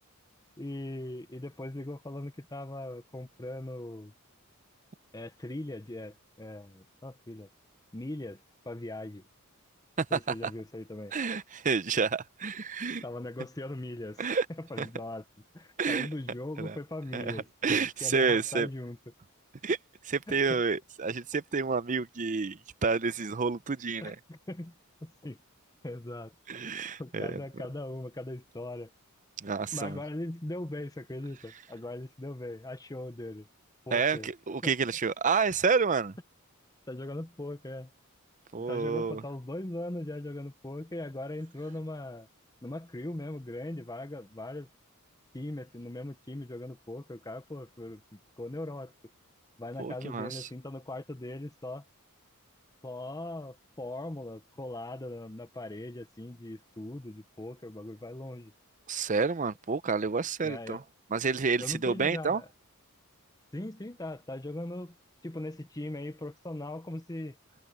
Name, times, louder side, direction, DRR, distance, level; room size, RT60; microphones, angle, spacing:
voice 1, 0.6-4.1 5.1-7.5 7.9-9.2 10.1-11.1 13.0-15.2 15.5-19.0 20.3-20.6 24.0-24.8 25.0-25.4 25.8-26.3 27.0-28.9 29.7-33.5 33.9-34.3 34.6-34.7 36.9-37.9 38.7-42.3 42.6-44.7 45.3-48.9 49.6-51.8 52.8-58.5 60.4-60.8 61.6-62.5 63.5-64.9 65.2-67.4, left 1 dB, 15° left, 0.8 m, -40 dB
voice 2, 10.0-10.5 11.1-13.0 14.2-14.5 14.8-14.9 15.8-16.1 16.6-16.8 17.1-18.7 19.6-19.8 20.0-24.2 26.5-27.4 29.4-30.0 33.9-36.1 38.5-39.2 49.8-50.5 58.9-60.8 61.1-62.4, right 5 dB, 35° right, 0.6 m, -29 dB
head